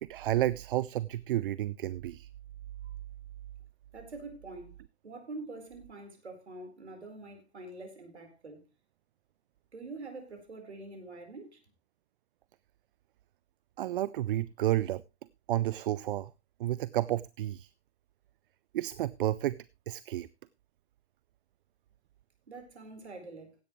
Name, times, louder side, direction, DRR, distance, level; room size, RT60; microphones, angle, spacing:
voice 1, 0.0-2.3 13.8-15.0 15.5-16.3 16.6-17.7 18.7-20.3, right 13 dB, 55° right, 0.5 m, -31 dB
voice 2, 3.9-4.8 5.0-8.7 9.7-11.6 22.5-23.6, right 3 dB, 80° right, 4.3 m, -45 dB
16.0 x 10.5 x 3.1 m
figure-of-eight pair, 110°, 33 cm